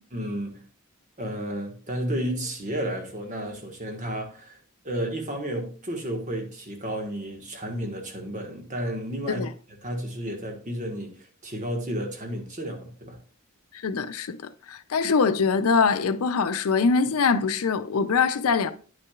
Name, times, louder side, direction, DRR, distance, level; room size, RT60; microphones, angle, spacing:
voice 1, 0.1-0.6 1.2-4.6 4.8-9.5 9.8-13.2, right 1 dB, 35° right, 1.4 m, -32 dB
voice 2, 13.8-14.4 14.7-18.7, left 5 dB, 85° left, 0.5 m, -23 dB
9.5 x 5.9 x 2.4 m
head